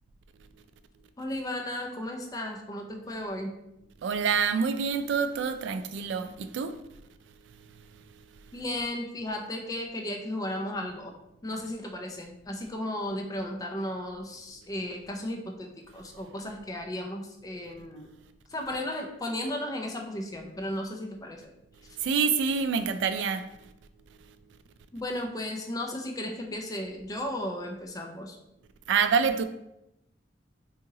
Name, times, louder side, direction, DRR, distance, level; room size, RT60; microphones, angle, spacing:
voice 1, 1.2-3.5 8.5-11.1 11.4-18.1 18.5-21.4 24.9-28.4, left 1 dB, 20° left, 0.4 m, -35 dB
voice 2, 4.0-6.8 22.0-23.4 28.9-29.4, right 6 dB, 80° right, 0.3 m, -26 dB
2.8 x 2.8 x 3.7 m
head